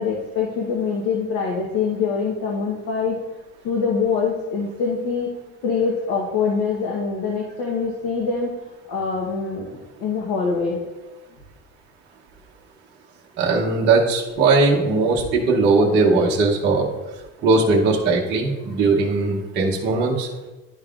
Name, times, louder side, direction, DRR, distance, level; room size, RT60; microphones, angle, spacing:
voice 1, 0.0-3.2 3.6-5.3 5.6-8.5 8.9-10.8, left 5 dB, 60° left, -2 dB, 1.0 m, -24 dB
voice 2, 13.4-16.8 17.4-20.3, right 3 dB, 30° right, -3 dB, 0.8 m, -19 dB
11.0 x 5.2 x 2.4 m, 1.1 s
cardioid pair, 175°, 34 cm